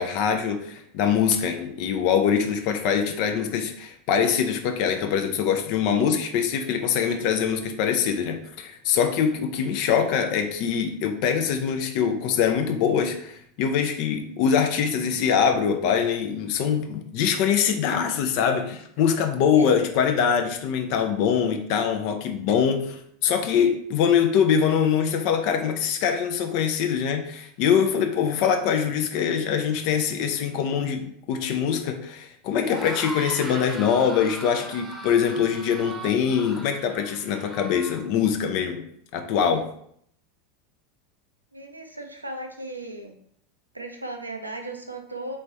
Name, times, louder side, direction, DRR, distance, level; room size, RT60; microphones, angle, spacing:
voice 1, 0.0-38.8 39.1-39.6, left 7 dB, 50° left, 6 dB, 0.5 m, -23 dB
sound 1, 32.6-38.0, right 1 dB, 10° right, 0.8 m, -38 dB
voice 2, 41.5-43.1 43.7-45.4, right 2 dB, 85° right, 4 dB, 0.5 m, -36 dB
3.4 x 3.2 x 4.0 m, 0.67 s
figure-of-eight pair, 80°, 0 cm